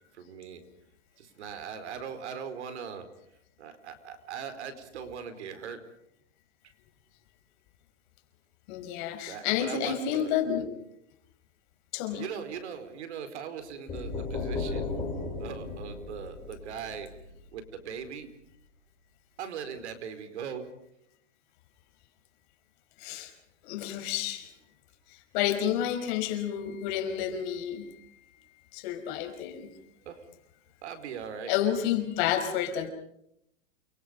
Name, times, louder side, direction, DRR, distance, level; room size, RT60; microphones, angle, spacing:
voice 1, 0.1-0.6 1.2-3.1 3.6-5.8 9.3-10.3 12.1-14.9 15.4-17.1 17.5-18.3 19.4-20.7 30.0-30.2 30.8-31.5, right 7 dB, 65° right, 9 dB, 4.6 m, -40 dB
voice 2, 8.7-10.7 11.9-12.3 23.0-23.3 23.7-24.5 25.1-28.0 28.7-29.7 31.5-32.9, left 10 dB, 40° left, 6 dB, 5.0 m, -30 dB
sound 1, 13.9-17.6, left 3 dB, 15° left, 6.5 m, -35 dB
29.5 x 24.5 x 5.2 m, 0.75 s
hypercardioid pair, 150°, 36 cm